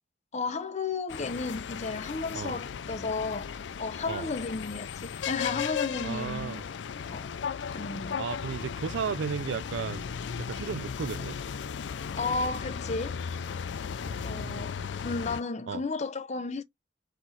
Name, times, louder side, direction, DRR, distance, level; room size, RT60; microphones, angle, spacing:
voice 1, 0.3-6.6 7.1-7.3 7.7-8.2 12.1-13.2 14.1-16.6, left 3 dB, 40° left, 0.7 m, -33 dB
sound 1, 1.1-15.4, left 7 dB, 75° left, 0.4 m, -36 dB
voice 2, 6.0-6.6 8.2-10.1 10.4-11.4 14.1-14.9 15.7-15.8, right 6 dB, 80° right, 0.4 m, -34 dB
4.4 x 3.1 x 3.9 m
head